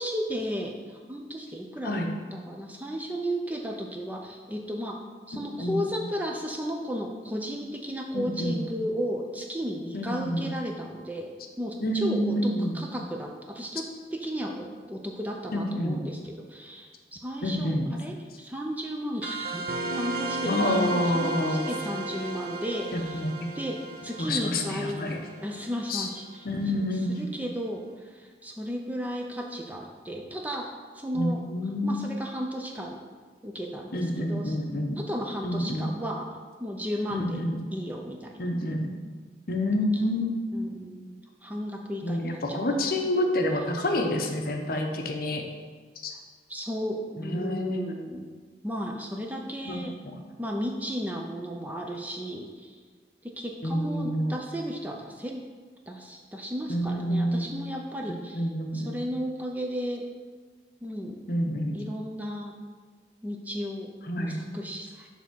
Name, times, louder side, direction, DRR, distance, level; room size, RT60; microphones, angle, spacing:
voice 1, 0.0-2.0 2.3-5.0 5.3-11.3 11.6-19.7 19.9-20.5 20.9-23.3 23.6-25.1 25.4-26.5 26.7-26.8 27.1-30.7 30.9-31.4 31.8-33.0 33.4-34.6 35.0-36.3 36.6-37.4 37.7-38.3 39.9-40.0 40.5-42.6 42.9-43.0 46.5-48.3 48.6-49.9 50.4-52.8 53.2-55.4 55.9-58.4 58.7-60.1 60.8-61.2 61.7-62.5 63.2-63.9 64.2-65.1, equal, 10° right, 1 dB, 0.5 m, -34 dB
voice 2, 8.1-8.6 9.9-10.5 11.8-12.8 15.5-16.0 17.4-17.9 20.5-21.7 22.9-23.3 24.2-25.2 25.9-26.1 26.4-27.3 31.1-32.0 33.9-35.0 35.4-35.9 37.1-37.6 38.4-38.9 39.5-40.6 42.0-45.4 46.0-46.1 47.2-47.9 49.7-49.9 53.6-54.4 56.7-57.5 58.3-58.9 61.3-61.8 64.1-64.4, left 1 dB, 55° left, 3 dB, 0.8 m, -28 dB
sound 1, 19.2-26.3, right 2 dB, 50° right, 0.6 m, -34 dB
6.9 x 3.5 x 6.1 m, 1.5 s
head